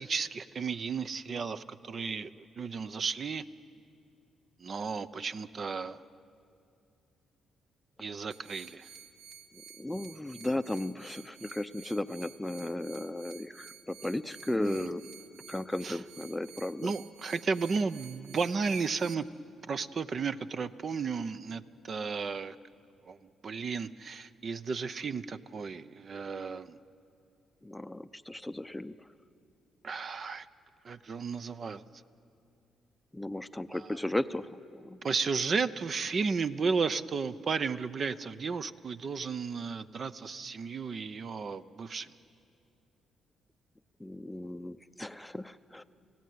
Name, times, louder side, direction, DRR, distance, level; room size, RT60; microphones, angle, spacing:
voice 1, 0.0-3.4 4.6-6.0 8.0-8.9 14.6-15.0 15.8-16.0 16.8-19.3 19.7-22.6 23.1-23.2 23.4-26.8 29.8-30.5 30.8-31.8 33.7-34.0 35.0-42.1, right 5 dB, 45° right, 13 dB, 0.7 m, -34 dB
sound 1, 8.3-19.1, right 7 dB, 80° right, 1.2 m, -52 dB
voice 2, 9.8-15.0 15.5-16.9 27.6-29.1 33.1-35.0 44.0-45.8, left 1 dB, 5° left, 11 dB, 0.6 m, -35 dB
28.5 x 16.5 x 9.4 m, 2.5 s
cardioid pair, 90°, 0 cm